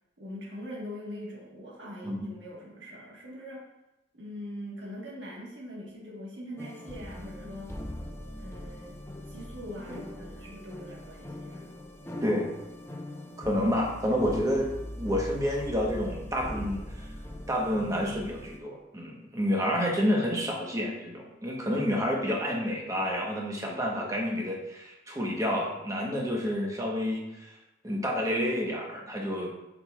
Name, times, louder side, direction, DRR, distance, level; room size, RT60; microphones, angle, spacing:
voice 1, 0.2-3.7 4.1-7.8 8.3-11.7, equal, 85° right, -4 dB, 1.5 m, -42 dB
sound 1, 6.6-18.6, left 1 dB, 15° left, 0.6 m, -41 dB
voice 2, 12.2-12.5 13.4-16.8 17.5-27.5 27.8-29.5, equal, 20° right, -1 dB, 1.1 m, -29 dB
7.5 x 6.0 x 2.4 m, 0.93 s
head